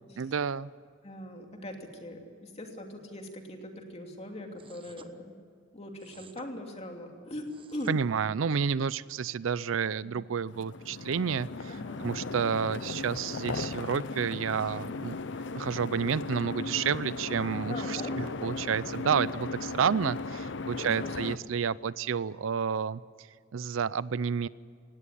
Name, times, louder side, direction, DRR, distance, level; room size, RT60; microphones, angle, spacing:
voice 1, 0.2-0.7 7.9-15.2 15.6-23.0 23.5-24.5, right 6 dB, 85° right, 19 dB, 0.5 m, -30 dB
voice 2, 1.0-5.3 5.7-8.0 10.0-10.2 11.7-12.0 17.7-18.2 20.8-21.4, left 1 dB, 35° left, 3 dB, 2.8 m, -41 dB
sound 1, 4.6-5.1 6.0-6.5 7.3-8.0, right 4 dB, 25° right, 1.1 m, -53 dB
sound 2, 10.4-21.4, left 3 dB, 65° left, 0.7 m, -37 dB
18.5 x 17.0 x 10.0 m, 2.2 s
head